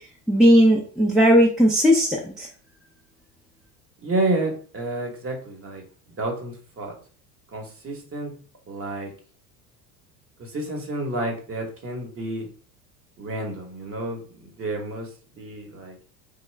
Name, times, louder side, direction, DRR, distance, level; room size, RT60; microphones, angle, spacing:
voice 1, 0.3-2.5, equal, ahead, -3 dB, 0.4 m, -17 dB
voice 2, 4.0-5.8 6.2-6.9 7.5-8.3 8.7-9.1 10.4-12.5 13.2-15.1 15.4-16.0, right 2 dB, 30° right, 2 dB, 1.0 m, -30 dB
3.0 x 2.2 x 3.2 m, 0.43 s
hypercardioid pair, 80°, 47 cm